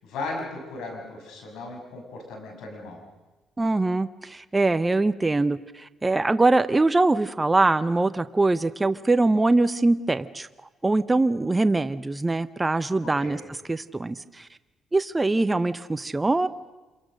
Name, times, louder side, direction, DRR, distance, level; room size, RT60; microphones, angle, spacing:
voice 1, 0.0-3.0 13.0-13.4, left 2 dB, 90° left, 2 dB, 6.7 m, -36 dB
voice 2, 3.6-10.5 10.8-13.4 13.7-14.5 14.9-16.5, right 2 dB, 20° right, 11 dB, 0.8 m, -23 dB
26.5 x 23.0 x 6.4 m, 1.2 s
cardioid pair, 90°, 0 cm